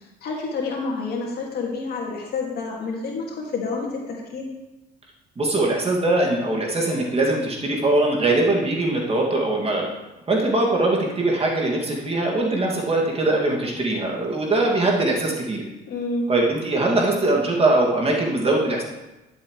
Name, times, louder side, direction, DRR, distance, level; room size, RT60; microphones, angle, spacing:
voice 1, 0.2-4.4 15.9-16.3, left 3 dB, 65° left, -1 dB, 2.3 m, -28 dB
voice 2, 5.4-9.9 10.3-15.6 16.3-18.8, right 2 dB, 35° right, -1 dB, 2.4 m, -21 dB
11.0 x 7.4 x 3.3 m, 1.0 s
supercardioid pair, 85°, 18 cm